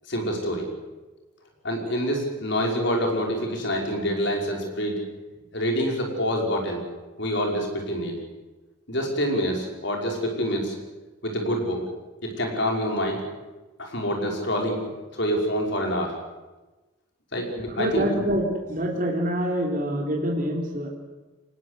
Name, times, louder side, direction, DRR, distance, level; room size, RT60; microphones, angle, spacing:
voice 1, 0.1-0.7 1.6-5.0 5.5-6.8 7.2-8.2 8.9-10.8 11.2-11.8 12.2-13.2 13.8-14.8 15.1-16.2 17.3-18.2, equal, 60° left, 1 dB, 5.6 m, -26 dB
voice 2, 17.8-20.9, equal, 45° right, -1 dB, 3.7 m, -26 dB
24.5 x 20.0 x 8.3 m, 1.2 s
head